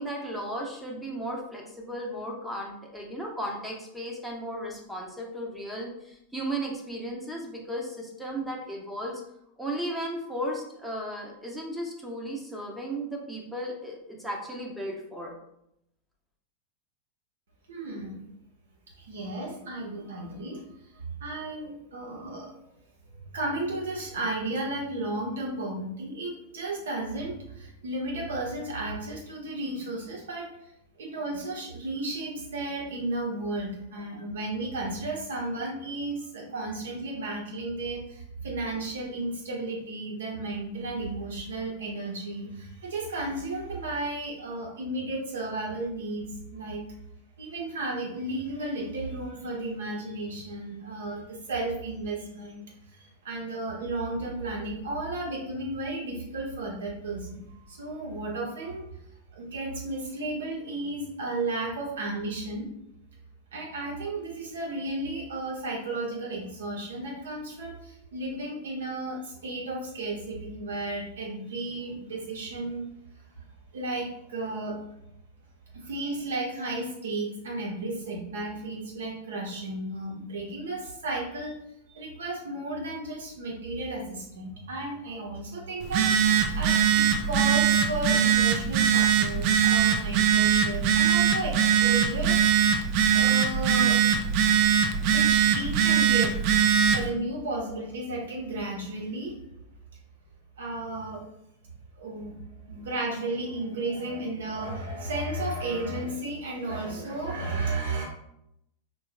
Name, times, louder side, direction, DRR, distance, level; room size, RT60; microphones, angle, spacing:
voice 1, 0.0-9.2 9.6-15.3, right 1 dB, 5° right, -1 dB, 0.9 m, -35 dB
voice 2, 17.7-18.2 19.0-22.5 23.2-30.5 31.0-46.8 47.4-59.0 59.3-62.7 63.5-72.8 73.4-73.5 73.7-74.8 75.7-81.6 81.9-92.7 93.1-94.0 95.1-96.3 96.9-99.4 100.6-101.2 102.0-102.4 102.7-108.0, right 2 dB, 65° right, -2 dB, 1.3 m, -34 dB
Telephone, 85.8-97.1, right 8 dB, 45° right, 0.4 m, -22 dB
4.5 x 3.8 x 2.2 m, 0.79 s
figure-of-eight pair, 90°, 0 cm